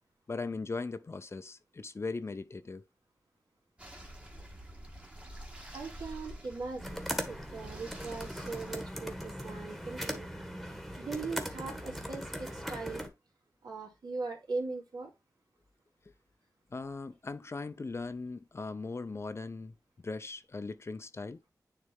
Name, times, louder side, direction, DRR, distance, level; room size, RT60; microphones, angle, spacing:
voice 1, 0.3-2.8 16.7-21.4, left 3 dB, 40° left, 0.6 m, -39 dB
sound 1, 3.8-8.9, right 1 dB, 20° right, 1.4 m, -48 dB
voice 2, 5.7-10.3 11.0-13.0 13.6-15.1, right 3 dB, 75° right, 2.7 m, -40 dB
sound 2, 6.8-13.1, equal, ahead, 1.4 m, -39 dB
9.7 x 3.4 x 3.5 m
wide cardioid pair, 110°, 7 cm